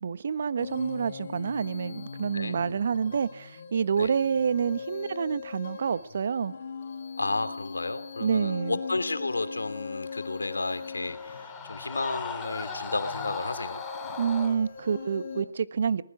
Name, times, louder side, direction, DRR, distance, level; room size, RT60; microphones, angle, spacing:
voice 1, 0.0-6.5 8.2-8.8 14.2-16.0, right 6 dB, 45° right, 1.2 m, -28 dB
sound 1, 0.6-15.4, left 5 dB, 40° left, 4.2 m, -41 dB
voice 2, 7.2-13.8, left 2 dB, 80° left, 2.8 m, -32 dB
Screaming, 10.1-14.6, left 5 dB, 10° left, 2.7 m, -38 dB
23.0 x 20.0 x 6.1 m
figure-of-eight pair, 155°, 0 cm